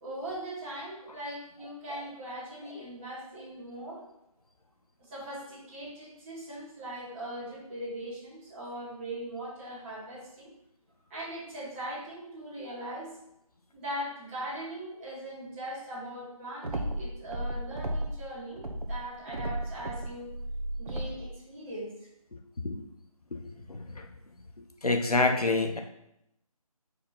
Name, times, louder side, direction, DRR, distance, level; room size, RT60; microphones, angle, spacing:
voice 1, 0.0-4.0 5.1-10.5 11.1-13.1 13.7-20.3 20.8-21.9, right 1 dB, 20° right, -11 dB, 2.2 m, -40 dB
sound 1, 16.6-18.2 18.6-21.3, right 1 dB, 85° right, 1.0 m, -34 dB
voice 2, 23.7-24.1 24.6-25.8, left 2 dB, 85° left, 4 dB, 1.1 m, -28 dB
4.9 x 4.4 x 5.8 m, 0.80 s
figure-of-eight pair, 160°, 19 cm